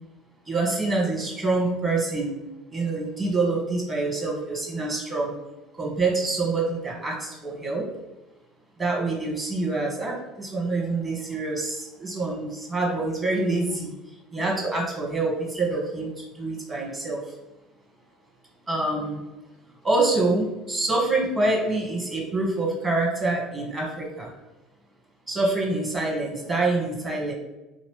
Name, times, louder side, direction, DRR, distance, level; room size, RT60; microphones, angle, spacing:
voice 1, 0.5-2.3 2.7-5.3 5.8-7.9 8.8-13.9 14.3-16.1 16.4-17.2 18.7-19.2 19.8-24.3 25.3-27.3, right 2 dB, 20° right, -2 dB, 1.2 m, -26 dB
3.0 x 2.9 x 3.1 m, 1.0 s
figure-of-eight pair, 65°, 0 cm